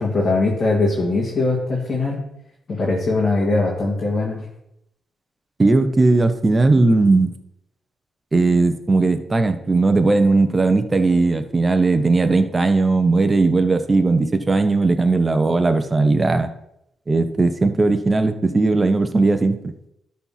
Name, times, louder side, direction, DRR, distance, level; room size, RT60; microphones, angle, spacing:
voice 1, 0.0-2.2 2.7-4.5, left 3 dB, 40° left, -4 dB, 2.4 m, -21 dB
voice 2, 5.6-7.3 8.3-16.5 17.1-19.7, right 3 dB, 25° right, 9 dB, 0.9 m, -17 dB
12.0 x 4.3 x 5.8 m, 0.80 s
cardioid pair, 100°, 0 cm